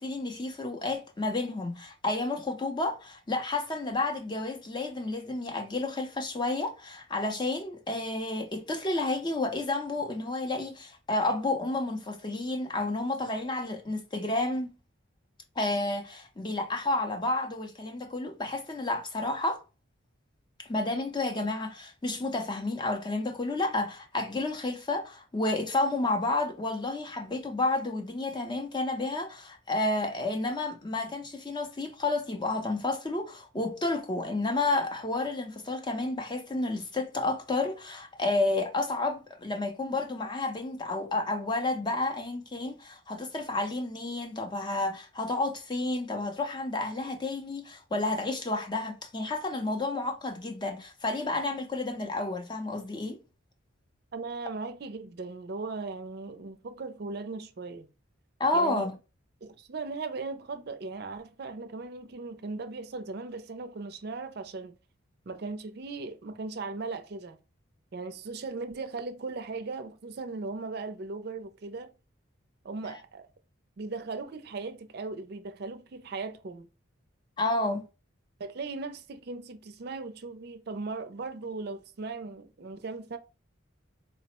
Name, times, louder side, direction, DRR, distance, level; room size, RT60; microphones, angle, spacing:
voice 1, 0.0-14.7 15.6-19.6 20.6-53.2 58.4-58.9 77.4-77.9, left 2 dB, 20° left, 0.5 m, -31 dB
voice 2, 54.1-57.9 58.5-58.9 59.4-64.8 65.3-67.4 67.9-71.9 72.6-73.3 73.8-76.7 78.4-83.2, right 3 dB, 50° right, 0.4 m, -38 dB
3.9 x 2.0 x 4.1 m
head